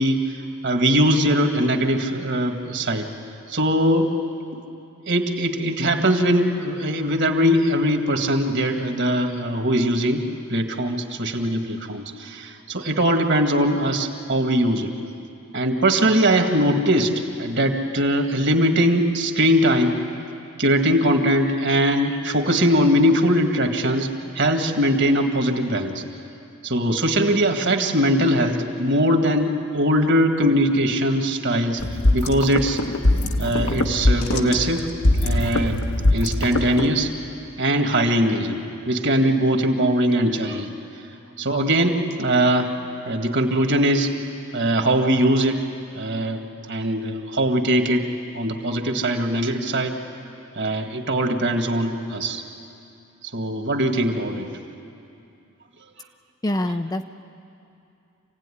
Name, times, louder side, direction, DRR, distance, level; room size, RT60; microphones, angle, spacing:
voice 1, 0.0-3.1 3.5-4.1 5.1-10.2 10.5-14.9 15.5-17.1 17.4-19.9 20.6-24.1 24.4-26.0 26.6-31.8 32.1-32.8 33.4-34.9 35.2-35.8 36.1-37.1 37.6-38.6 38.9-40.7 41.4-42.7 43.1-44.1 44.5-45.6 46.0-48.0 48.3-50.0 50.6-52.4 53.3-54.5, equal, 50° right, 4 dB, 1.9 m, -21 dB
sound 1, 31.8-36.9, left 1 dB, 70° left, 1.3 m, -22 dB
voice 2, 56.4-57.0, left 1 dB, 15° left, 7 dB, 0.5 m, -24 dB
27.0 x 17.0 x 10.0 m, 2.7 s
head